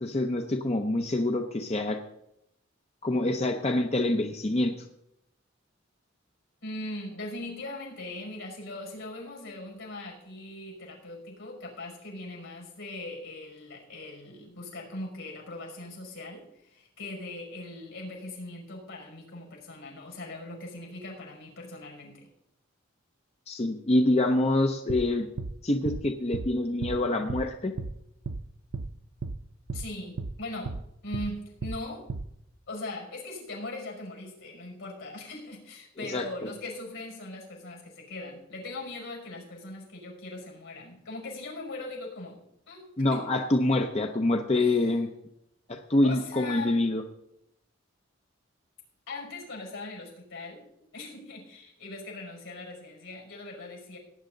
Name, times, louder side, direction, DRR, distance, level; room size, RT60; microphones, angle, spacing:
voice 1, 0.0-2.0 3.0-4.7 23.5-25.3 25.6-27.7 36.0-36.2 43.0-45.1 45.7-47.0, left 2 dB, 30° left, 5 dB, 0.7 m, -26 dB
voice 2, 6.6-22.3 29.7-32.1 32.7-43.5 44.5-44.9 46.0-46.8 49.1-50.7 50.9-54.0, left 2 dB, 85° left, -1 dB, 5.7 m, -40 dB
sound 1, 24.9-25.1 25.4-25.5 25.9-26.0 26.3-26.5 26.8-27.0 27.3-27.5 27.8-27.9 28.3-28.4 28.7-28.9 29.2-29.4 29.7-29.9 30.2-30.3 30.7-30.8 31.1-31.3 31.6-31.8 32.1-32.3, right 3 dB, 90° right, 0.6 m, -34 dB
18.0 x 9.5 x 3.9 m, 0.80 s
head